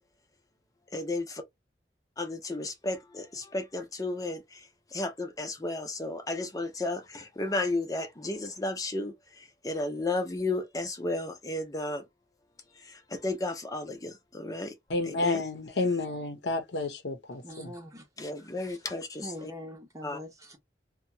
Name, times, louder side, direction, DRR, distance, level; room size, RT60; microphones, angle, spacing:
voice 1, 0.9-1.2 2.2-3.3 3.5-4.4 4.9-9.1 9.6-12.0 13.2-14.7 15.1-15.4 18.2-19.5 20.0-20.2, left 2 dB, 20° left, 0.7 m, -33 dB
voice 2, 14.9-17.7, left 3 dB, 70° left, 0.7 m, -30 dB
voice 3, 17.4-18.0 19.2-20.6, equal, 20° right, 0.8 m, -43 dB
2.8 x 2.2 x 2.7 m
head